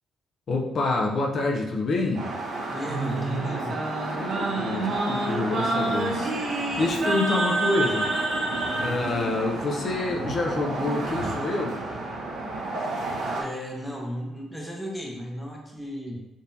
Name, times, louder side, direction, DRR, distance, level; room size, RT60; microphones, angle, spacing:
voice 1, 0.5-2.3 4.2-6.3 6.8-8.1 8.8-11.8, left 2 dB, 45° left, -1 dB, 0.5 m, -27 dB
sound 1, 2.1-13.4, right 2 dB, 80° right, 0.8 m, -32 dB
voice 2, 2.7-3.8 13.4-16.2, equal, 5° left, -1 dB, 0.7 m, -34 dB
Singing, 2.9-8.9, right 2 dB, 55° right, 0.8 m, -28 dB
3.7 x 2.7 x 2.6 m, 1.0 s
cardioid pair, 130°, 0 cm